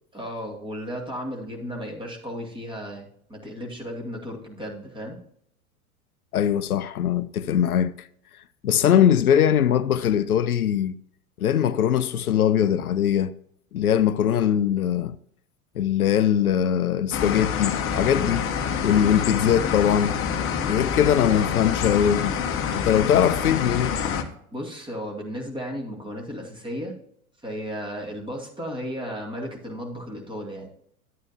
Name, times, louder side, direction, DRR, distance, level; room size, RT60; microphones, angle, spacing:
voice 1, 0.1-5.2 24.5-26.9 27.4-30.7, equal, 10° right, 2.3 m, -34 dB
voice 2, 6.3-8.1 8.6-11.0 11.4-13.3 13.7-15.2 15.8-18.5 18.8-20.2 20.6-22.3 22.7-24.0, left 9 dB, 80° left, 0.6 m, -21 dB
sound 1, 17.1-24.2, left 7 dB, 30° left, 1.0 m, -27 dB
11.0 x 8.7 x 2.7 m
figure-of-eight pair, 85°, 43 cm